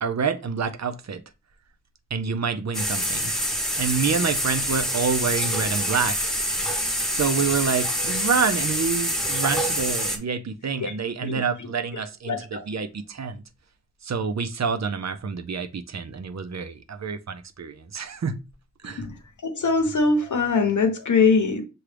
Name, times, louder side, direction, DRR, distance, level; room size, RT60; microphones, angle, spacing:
voice 1, 0.0-1.2 2.1-3.3 3.8-6.4 7.1-13.4 14.0-18.4 18.8-19.1, right 5 dB, 65° right, 0.5 m, -27 dB
sound 1, 2.7-10.2, equal, ahead, 1.0 m, -26 dB
voice 2, 19.4-21.6, left 4 dB, 85° left, 0.8 m, -22 dB
6.1 x 2.3 x 3.3 m
wide cardioid pair, 60°, 29 cm